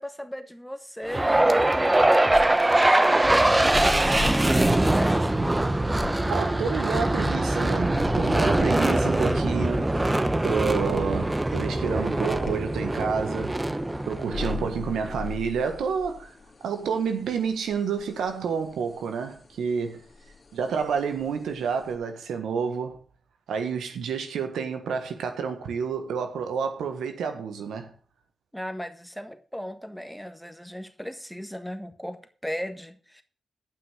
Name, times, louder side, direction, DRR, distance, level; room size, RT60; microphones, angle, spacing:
voice 1, 0.0-5.3 8.6-8.7 14.6-14.7 28.5-33.2, equal, ahead, 1.5 m, -37 dB
sound 1, 1.1-15.3, right 1 dB, 20° right, 1.0 m, -23 dB
sound 2, 2.3-22.0, left 5 dB, 50° left, 2.5 m, -41 dB
voice 2, 6.3-9.9 10.4-13.6 14.0-16.3 16.6-20.0 20.5-23.0 23.5-27.9, right 6 dB, 90° right, 1.5 m, -29 dB
10.5 x 5.9 x 6.5 m
cardioid pair, 55°, 0 cm